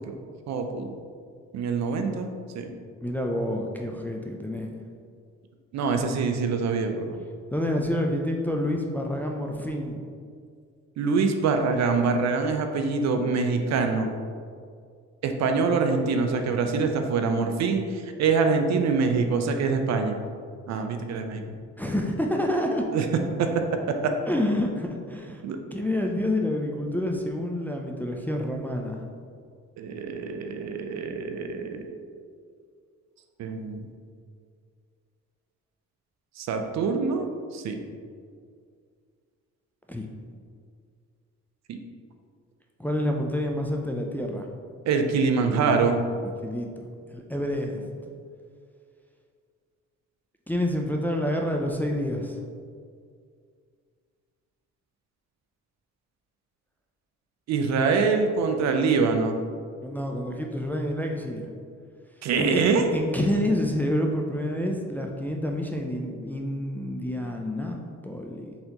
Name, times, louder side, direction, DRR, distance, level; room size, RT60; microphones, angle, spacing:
voice 1, 0.5-1.0 1.5-2.7 5.7-7.2 11.0-14.1 15.2-20.2 20.7-21.4 22.9-23.1 23.4-23.5 24.0-24.1 25.4-25.6 29.8-31.9 33.4-33.9 36.4-37.8 41.7-41.8 44.9-46.0 57.5-59.4 62.2-62.9, right 4 dB, 65° right, 6 dB, 0.5 m, -25 dB
voice 2, 3.0-4.7 7.5-10.0 21.8-22.8 24.3-25.4 25.7-29.0 39.9-40.1 42.8-44.5 45.4-45.8 46.4-46.9 47.1-48.1 50.5-52.4 59.8-61.5 62.4-62.6 62.9-68.6, left 1 dB, 5° left, 1 dB, 0.3 m, -28 dB
4.1 x 3.8 x 2.9 m, 2.1 s
cardioid pair, 90°, 30 cm